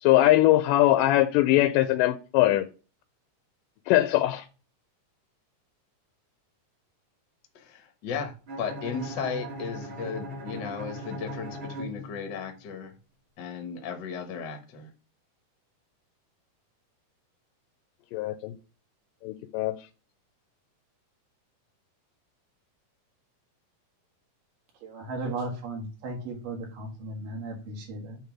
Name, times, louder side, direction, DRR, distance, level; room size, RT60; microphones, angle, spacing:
voice 1, 0.0-2.7 3.9-4.5 18.1-18.5 19.2-19.8, left 15 dB, 80° left, 2.1 m, -21 dB
voice 2, 7.5-12.9 13.4-14.9, left 6 dB, 65° left, 1.1 m, -35 dB
Bowed string instrument, 8.5-12.6, equal, 45° right, 2.1 m, -39 dB
voice 3, 24.8-28.2, right 2 dB, 75° right, 3.2 m, -36 dB
8.3 x 3.2 x 5.9 m
omnidirectional pair, 3.9 m